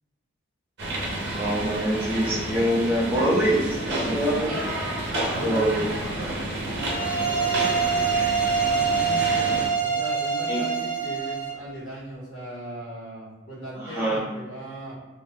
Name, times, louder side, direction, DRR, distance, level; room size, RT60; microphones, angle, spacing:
sound 1, 0.8-9.7, right 1 dB, 55° right, 0.7 m, -30 dB
voice 1, 1.3-4.7 5.4-5.7 10.5-10.6 13.7-14.2, equal, 10° right, -8 dB, 0.6 m, -24 dB
voice 2, 5.4-8.1 8.7-15.0, right 1 dB, 70° left, -8 dB, 1.3 m, -38 dB
sound 2, 6.8-11.6, right 6 dB, 40° left, 1.0 m, -25 dB
2.7 x 2.1 x 3.4 m, 1.2 s
head